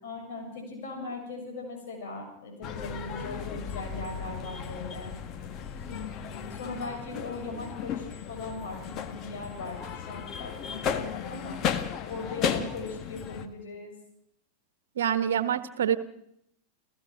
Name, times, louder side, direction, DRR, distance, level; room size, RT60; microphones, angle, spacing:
voice 1, 0.0-5.1 5.9-11.6 12.1-13.9, left 3 dB, 55° left, 3 dB, 7.5 m, -39 dB
sound 1, 2.6-13.5, left 8 dB, 35° left, 1.7 m, -35 dB
voice 2, 15.0-16.0, right 9 dB, 65° right, 13 dB, 1.3 m, -26 dB
29.5 x 16.0 x 6.2 m, 0.78 s
figure-of-eight pair, 90°, 0 cm